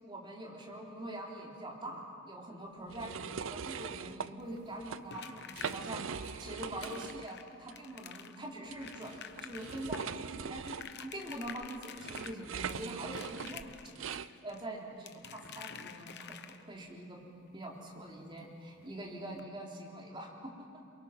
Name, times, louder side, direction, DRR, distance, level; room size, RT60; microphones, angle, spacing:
voice 1, 0.0-3.1 3.4-13.7 14.4-17.2 17.5-20.5, right 1 dB, 25° right, -2 dB, 3.6 m, -44 dB
sound 1, 2.9-4.3 4.7-5.0 5.4-7.3 7.6-7.7 8.7-14.3, right 6 dB, 70° right, 0.6 m, -41 dB
sound 2, 4.4-16.9 18.4-18.5 18.8-18.9 19.3-19.4, left 8 dB, 55° left, 0.9 m, -50 dB
28.0 x 23.0 x 6.0 m, 2.4 s
head